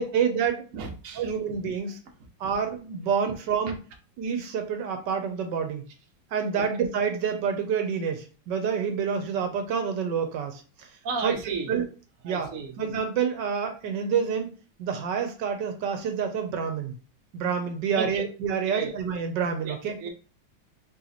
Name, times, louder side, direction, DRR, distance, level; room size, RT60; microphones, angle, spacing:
voice 1, 0.0-0.6 1.2-2.0 2.4-3.8 4.2-5.9 6.3-10.9 11.2-11.8 12.2-12.5 12.8-14.5 14.8-17.0 17.3-20.0, right 7 dB, 80° right, 5 dB, 1.4 m, -28 dB
voice 2, 0.7-1.3 6.5-6.6 11.0-11.7 12.3-12.7 17.9-18.2 18.7-18.9 19.6-20.1, right 5 dB, 55° right, 2 dB, 1.1 m, -33 dB
3.2 x 2.9 x 3.9 m, 0.36 s
omnidirectional pair, 1.9 m